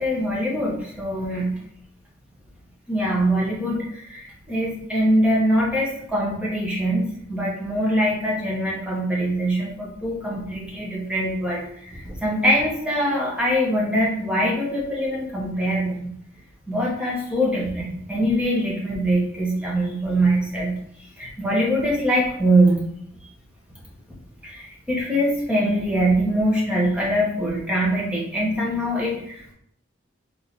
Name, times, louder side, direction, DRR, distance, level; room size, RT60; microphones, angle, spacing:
voice 1, 0.0-1.6 2.9-16.1 16.7-20.7 21.2-22.8 24.4-29.5, right 1 dB, 5° right, -4 dB, 1.0 m, -23 dB
3.7 x 3.2 x 3.9 m, 0.70 s
head